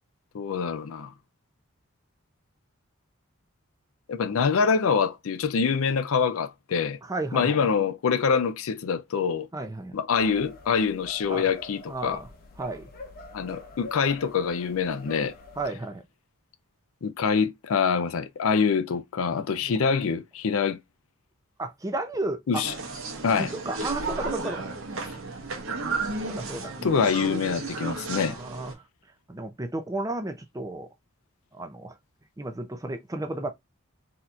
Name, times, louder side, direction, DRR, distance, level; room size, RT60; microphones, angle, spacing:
voice 1, 0.3-1.1 4.1-7.0 7.3-9.5 9.9-12.2 13.3-15.3 17.0-20.8 22.5-22.7 23.2-23.5 26.8-28.4, left 6 dB, 75° left, 0.4 m, -25 dB
voice 2, 7.0-7.6 9.5-10.0 11.3-11.5 11.9-12.3 12.6-12.9 15.6-16.0 19.7-19.8 21.6-22.6 23.4-24.7 26.2-27.1 28.1-28.8 29.3-30.9 31.5-31.9 32.4-33.5, right 2 dB, 15° right, 0.5 m, -33 dB
sound 1, 10.1-15.7, left 2 dB, 45° left, 0.8 m, -45 dB
sound 2, 22.6-28.7, right 3 dB, 65° right, 0.9 m, -33 dB
4.2 x 2.8 x 2.3 m
head